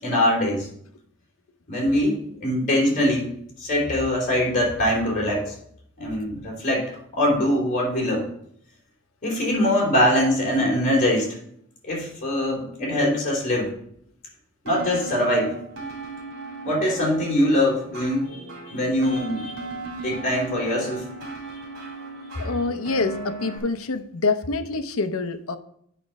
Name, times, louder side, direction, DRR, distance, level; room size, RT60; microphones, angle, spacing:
voice 1, 0.0-0.7 1.7-3.3 3.6-5.5 6.0-8.3 9.2-11.4 11.8-13.7 14.6-15.5 16.6-21.0, left 1 dB, 35° left, -3 dB, 3.6 m, -23 dB
sound 1, 14.7-23.6, right 2 dB, 75° right, 3.4 m, -37 dB
voice 2, 22.4-25.6, left 3 dB, 75° left, 10 dB, 0.7 m, -26 dB
8.6 x 5.9 x 5.3 m, 0.69 s
head